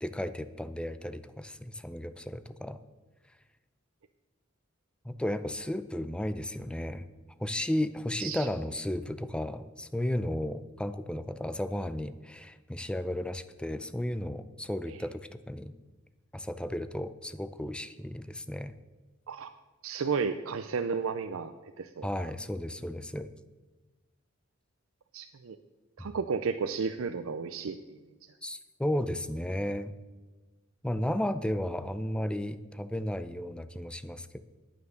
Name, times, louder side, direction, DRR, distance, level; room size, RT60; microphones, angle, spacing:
voice 1, 0.0-2.8 5.0-7.1 7.4-15.8 16.3-18.7 22.0-23.3 26.0-26.1 28.4-29.9 30.8-34.4, left 1 dB, 5° left, 12 dB, 0.5 m, -34 dB
voice 2, 19.8-22.1 25.1-25.6 26.0-28.0, right 5 dB, 90° right, 9 dB, 0.5 m, -33 dB
9.5 x 8.8 x 6.5 m, 1.2 s
head